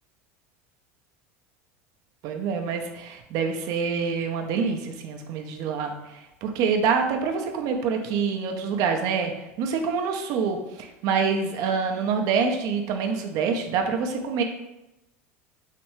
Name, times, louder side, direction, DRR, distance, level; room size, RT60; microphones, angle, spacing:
voice 1, 2.2-9.3 9.6-14.4, right 5 dB, 55° right, 5 dB, 0.5 m, -26 dB
3.3 x 3.0 x 3.0 m, 0.96 s
hypercardioid pair, 80°, 7 cm